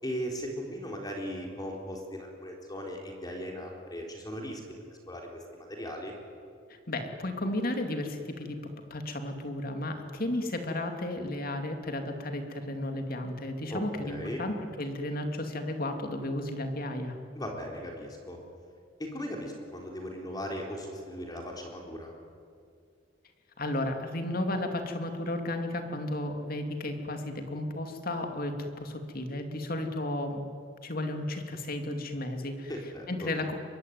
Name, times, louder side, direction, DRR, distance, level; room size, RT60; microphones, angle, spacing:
voice 1, 0.0-6.1 13.7-14.5 17.3-18.4 19.0-22.1 32.7-33.3, equal, 20° left, 1 dB, 3.8 m, -38 dB
voice 2, 6.7-17.2 23.6-30.5 30.8-32.7 33.1-33.5, left 1 dB, 50° left, 5 dB, 2.8 m, -33 dB
24.0 x 23.0 x 9.5 m, 2.3 s
head